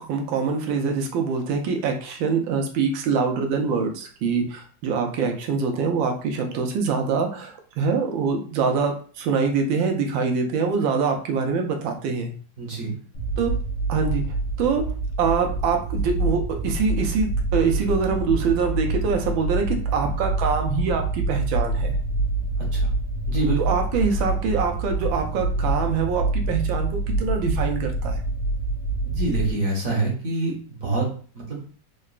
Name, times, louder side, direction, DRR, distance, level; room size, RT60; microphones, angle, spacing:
voice 1, 0.0-12.3 13.4-13.5 13.9-14.2 14.6-14.8 15.2-22.0 23.6-28.2, right 5 dB, 85° right, 3 dB, 1.4 m, -24 dB
voice 2, 12.6-12.9 22.6-22.9 23.3-23.6 29.0-31.1 31.3-31.6, right 3 dB, 55° right, -1 dB, 1.1 m, -26 dB
sound 1, 13.1-29.5, right 2 dB, 65° left, 1.0 m, -26 dB
3.8 x 2.2 x 2.4 m, 0.42 s
omnidirectional pair, 2.0 m